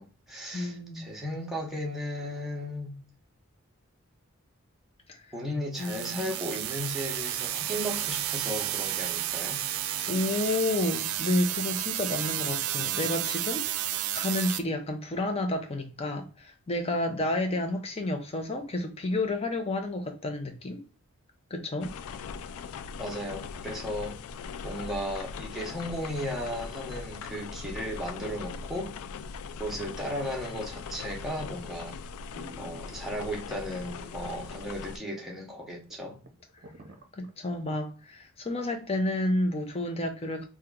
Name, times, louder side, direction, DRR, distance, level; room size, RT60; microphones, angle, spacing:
voice 1, 0.0-3.0 5.3-9.6 23.0-24.2 24.6-28.9 29.6-32.0 32.6-36.2, equal, ahead, 0.8 m, -35 dB
voice 2, 0.5-1.1 5.1-5.2 5.8-6.3 10.1-20.8 21.5-21.9 37.2-40.4, left 1 dB, 30° left, 0.6 m, -30 dB
sound 1, 5.8-14.6, right 12 dB, 85° right, 0.4 m, -32 dB
sound 2, 21.8-35.0, left 5 dB, 85° left, 0.3 m, -40 dB
sound 3, 31.9-32.0 32.3-33.4 34.0-34.7 35.0-35.1 35.6-35.7 35.9-37.8 38.2-38.3, right 1 dB, 45° right, 0.7 m, -51 dB
2.9 x 2.2 x 3.6 m
head